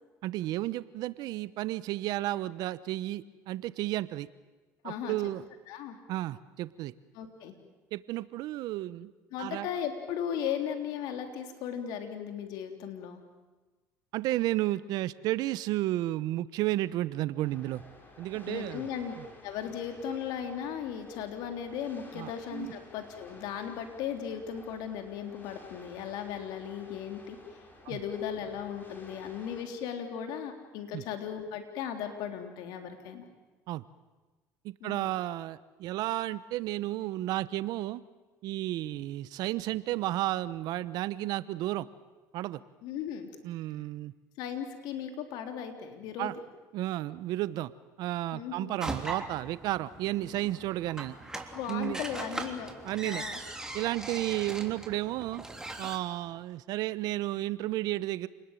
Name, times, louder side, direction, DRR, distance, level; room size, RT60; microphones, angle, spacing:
voice 1, 0.2-4.3 4.8-5.4 6.1-6.9 7.9-9.1 9.4-9.7 14.1-17.8 18.2-18.9 22.1-22.7 27.8-28.0 30.9-31.0 33.7-33.8 34.6-38.0 38.4-41.9 42.3-42.6 43.4-44.1 46.2-46.4 46.7-47.7 48.0-51.1 51.7-52.0 52.8-53.2 53.7-55.4 55.8-58.3, right 16 dB, 70° right, 16 dB, 0.9 m, -32 dB
voice 2, 4.8-5.2 5.7-6.0 7.1-7.5 9.3-13.2 18.5-19.1 19.4-27.4 27.9-33.3 34.8-35.2 42.8-43.3 44.4-46.3 48.3-48.8 51.5-52.7 53.0-53.4, left 8 dB, 75° left, 5 dB, 3.7 m, -37 dB
sound 1, 17.4-29.6, left 2 dB, 30° left, 6.6 m, -53 dB
sound 2, 48.8-56.0, right 2 dB, 10° right, 3.4 m, -40 dB
29.0 x 20.5 x 9.1 m, 1.2 s
supercardioid pair, 90°, 7 cm